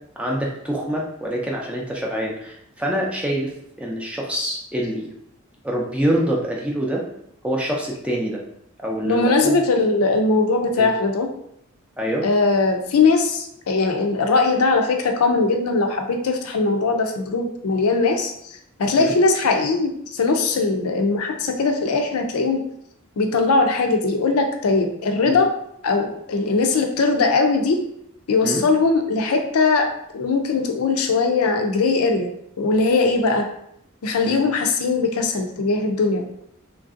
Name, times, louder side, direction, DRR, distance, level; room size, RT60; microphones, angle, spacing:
voice 1, 0.2-3.5 3.8-5.1 5.6-7.0 7.4-8.4 8.8-9.6 10.8-10.9 12.0-12.2 19.0-19.1 25.2-25.4 28.4-28.6 34.2-34.4, equal, 5° right, -2 dB, 0.4 m, -25 dB
voice 2, 9.0-11.3 12.2-18.3 18.8-22.6 23.2-25.5 25.8-27.8 28.3-33.5 34.0-36.3, left 3 dB, 85° left, 4 dB, 0.5 m, -20 dB
3.1 x 2.6 x 2.4 m, 0.73 s
head